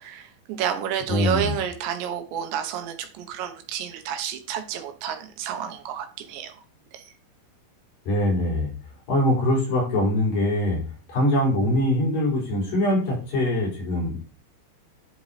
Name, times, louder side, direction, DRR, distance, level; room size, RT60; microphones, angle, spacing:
voice 1, 0.0-6.6 6.9-7.1, right 9 dB, 85° right, 6 dB, 3.3 m, -30 dB
voice 2, 1.1-1.5 8.1-8.7 9.1-10.8 11.1-14.4, left 1 dB, 55° left, -4 dB, 5.6 m, -23 dB
11.0 x 4.5 x 4.2 m, 0.37 s
omnidirectional pair, 5.0 m